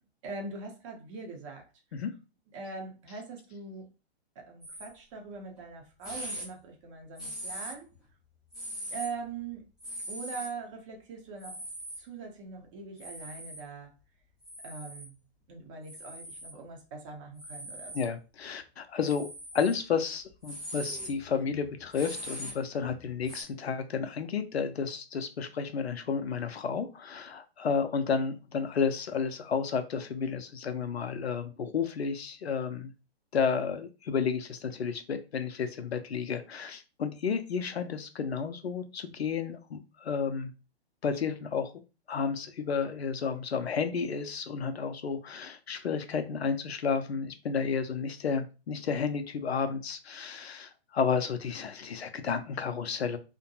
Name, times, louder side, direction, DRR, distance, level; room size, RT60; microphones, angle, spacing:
voice 1, 0.2-1.7 2.5-3.9 4.4-7.9 8.9-9.7 10.1-11.6 12.0-13.9 14.6-15.1 15.5-18.1, right 4 dB, 30° right, 0.7 m, -42 dB
sound 1, 4.6-4.9 5.6-5.7 6.0-6.5 7.2-7.9 8.5-9.1 9.8-10.5 11.4-12.0 13.0-13.6 14.4-15.1 15.8-16.5 17.4-18.1 19.0-19.7 20.2-23.4, right 1 dB, ahead, 0.3 m, -41 dB
voice 2, 17.9-19.3 19.5-32.9 33.3-40.5 41.0-41.7 42.1-53.2, left 6 dB, 75° left, 0.5 m, -32 dB
2.5 x 2.2 x 2.7 m
figure-of-eight pair, 120°, 32 cm